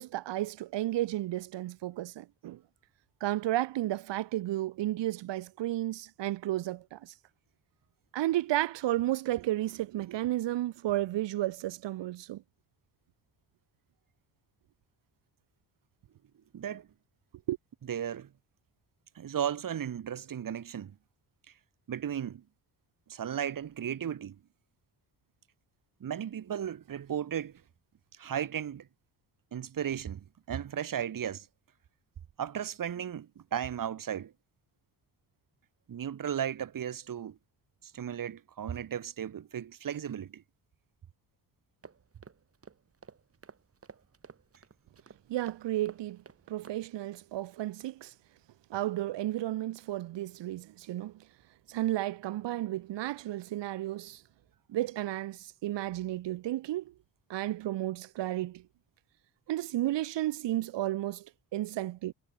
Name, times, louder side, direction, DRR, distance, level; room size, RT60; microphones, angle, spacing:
voice 1, 0.0-2.6 3.2-7.2 8.1-12.4 17.5-17.6 45.3-46.2 46.5-48.1 48.7-51.1 51.7-54.2 54.7-56.9 57.3-58.6 59.5-62.1, right 15 dB, 85° right, 1.8 m, -32 dB
voice 2, 16.5-16.9 17.9-18.3 19.1-20.9 21.9-22.4 23.1-24.4 26.0-27.6 28.2-28.9 29.5-31.5 32.4-34.3 35.9-37.4 37.8-40.4, right 9 dB, 50° right, 3.0 m, -35 dB
sound 1, 41.8-46.8, right 5 dB, 35° right, 7.8 m, -53 dB
cardioid pair, 125°, 42 cm